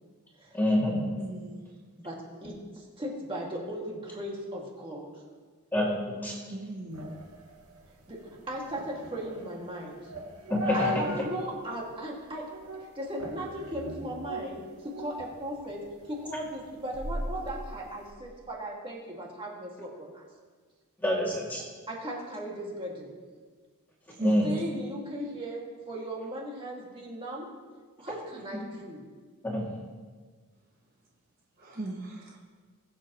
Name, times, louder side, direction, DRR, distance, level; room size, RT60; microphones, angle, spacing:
voice 1, 0.5-1.0 5.7-6.3 10.5-10.9 21.0-21.6 24.2-24.5 29.4-29.7, left 1 dB, 10° left, -5 dB, 2.4 m, -26 dB
voice 2, 1.2-1.6 6.5-7.1 24.2-24.6 31.6-32.4, right 2 dB, 40° right, -1 dB, 1.2 m, -37 dB
voice 3, 2.0-5.1 8.1-8.2 8.5-10.1 10.7-12.5 12.8-20.2 21.9-23.2 24.4-27.5 28.0-29.0, right 1 dB, 25° right, -3 dB, 2.1 m, -37 dB
sound 1, 6.9-11.4 11.8-11.9 12.5-12.9 13.2-15.3 15.7-18.1, left 1 dB, 80° right, 1.6 m, -37 dB
21.0 x 7.8 x 3.1 m, 1.5 s
head